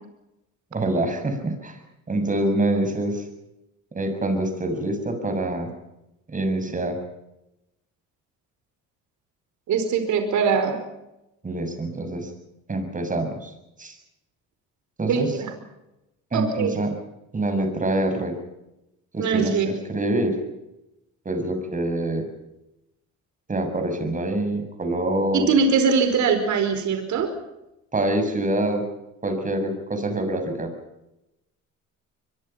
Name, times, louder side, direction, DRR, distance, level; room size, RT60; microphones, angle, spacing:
voice 1, 0.7-1.8 2.1-3.3 4.0-5.7 6.3-7.0 11.4-12.3 12.7-13.5 13.8-14.0 15.0-15.3 16.3-16.9 17.3-18.4 19.1-20.4 21.2-22.2 23.5-25.5 27.9-28.9 29.2-30.7, right 1 dB, 25° right, 6 dB, 6.8 m, -25 dB
voice 2, 9.7-10.8 15.1-15.5 16.3-16.7 19.2-19.7 25.3-27.3, right 5 dB, 60° right, 7 dB, 4.9 m, -22 dB
24.5 x 23.0 x 5.8 m, 0.90 s
cardioid pair, 100°, 32 cm